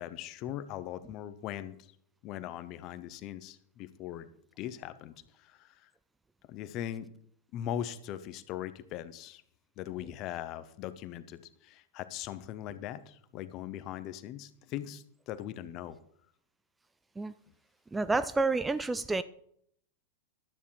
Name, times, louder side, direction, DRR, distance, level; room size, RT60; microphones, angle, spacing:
voice 1, 0.0-1.9 2.2-4.3 4.6-5.9 6.5-7.1 7.5-9.4 9.8-16.0, left 11 dB, 40° left, 0.9 m, -40 dB
voice 2, 17.9-19.2, right 3 dB, 10° right, 0.4 m, -29 dB
12.5 x 8.5 x 4.4 m
figure-of-eight pair, 90°, 0 cm